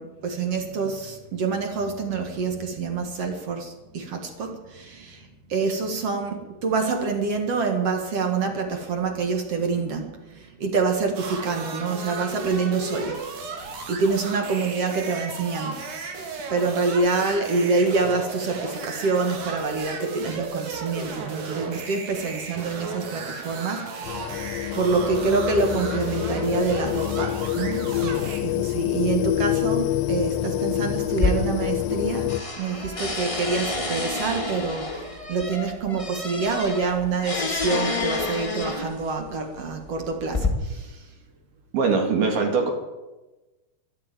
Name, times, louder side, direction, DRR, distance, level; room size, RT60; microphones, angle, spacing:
voice 1, 0.0-15.8 16.5-41.0, right 4 dB, 50° right, 5 dB, 2.2 m, -27 dB
sound 1, 11.2-28.4, right 4 dB, 90° right, 4.5 m, -35 dB
sound 2, 24.0-32.4, left 13 dB, 80° left, 2.2 m, -26 dB
sound 3, 31.1-32.0 32.3-39.1 39.9-40.5, left 3 dB, 45° left, 0.4 m, -29 dB
voice 2, 41.7-42.7, right 4 dB, 70° right, 2 dB, 4.1 m, -21 dB
12.5 x 12.0 x 9.0 m, 1.1 s
omnidirectional pair, 4.5 m